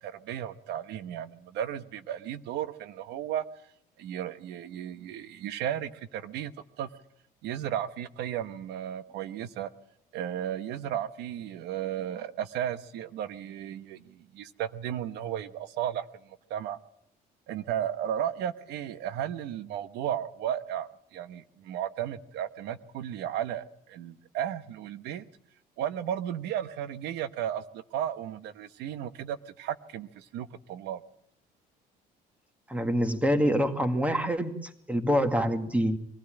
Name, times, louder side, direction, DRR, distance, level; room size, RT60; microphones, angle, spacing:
voice 1, 0.0-3.4 4.0-6.9 7.4-9.7 10.1-16.8 17.5-25.2 25.8-31.0, right 10 dB, 85° right, 13 dB, 1.1 m, -34 dB
voice 2, 32.7-34.5 34.9-36.0, equal, 10° right, 8 dB, 2.1 m, -25 dB
23.0 x 15.5 x 8.9 m, 0.72 s
cardioid pair, 110°, 17 cm